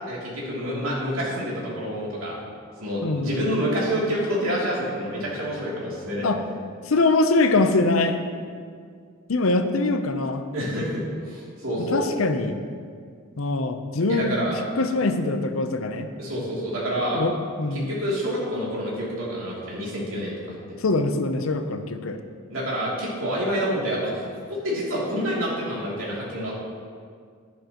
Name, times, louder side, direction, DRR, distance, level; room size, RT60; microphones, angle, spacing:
voice 1, 0.0-2.4 2.8-6.3 10.5-12.0 14.1-14.6 16.2-17.2 17.7-20.4 22.5-26.5, equal, 80° right, -5 dB, 2.9 m, -28 dB
voice 2, 3.0-3.3 6.2-6.4 6.9-8.2 9.3-10.4 11.8-12.6 13.4-16.1 17.1-17.9 20.8-22.2, left 2 dB, 75° left, 8 dB, 0.7 m, -23 dB
11.5 x 10.5 x 3.0 m, 2.1 s
head